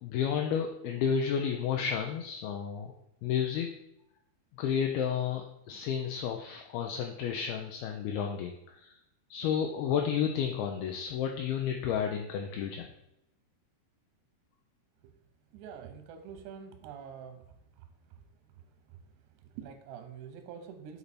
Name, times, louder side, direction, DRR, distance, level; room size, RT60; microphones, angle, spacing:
voice 1, 0.0-2.9 3.2-3.7 4.6-8.9 9.3-12.9, left 7 dB, 80° left, 3 dB, 2.4 m, -31 dB
voice 2, 15.5-17.4 19.6-21.0, right 7 dB, 90° right, 7 dB, 3.0 m, -45 dB
8.4 x 4.6 x 4.1 m, 0.81 s
omnidirectional pair, 4.7 m